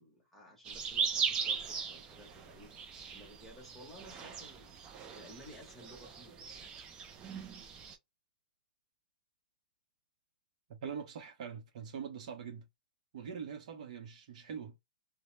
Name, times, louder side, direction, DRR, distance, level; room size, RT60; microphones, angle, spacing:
voice 1, 0.0-6.8, equal, 5° left, 0.9 m, -55 dB
sound 1, 0.6-8.0, right 6 dB, 20° right, 0.4 m, -39 dB
voice 2, 10.7-12.6 13.1-14.8, right 7 dB, 55° right, 0.7 m, -43 dB
2.1 x 2.0 x 3.0 m
hypercardioid pair, 145°, 5 cm